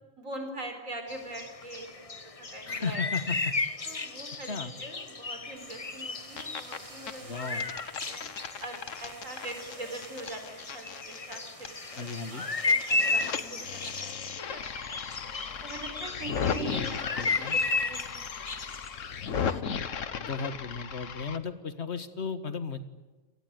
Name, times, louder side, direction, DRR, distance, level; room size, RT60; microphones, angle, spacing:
voice 1, 0.2-3.0 3.8-7.7 8.1-8.3 8.6-15.0 15.6-18.6, right 1 dB, 85° right, 6 dB, 4.6 m, -43 dB
sound 1, 1.1-19.6, left 3 dB, 30° left, 1.1 m, -34 dB
voice 2, 2.7-3.5 4.5-4.7 7.2-7.7 12.0-12.5 16.3-17.6 20.2-22.8, left 4 dB, 55° left, 10 dB, 2.0 m, -35 dB
sound 2, 5.6-14.0, right 1 dB, 25° right, 2.8 m, -51 dB
sound 3, 6.1-6.8 7.1-12.2 12.4-21.4, left 7 dB, 70° left, 1.5 m, -36 dB
30.0 x 18.5 x 9.5 m, 1.2 s
omnidirectional pair, 1.3 m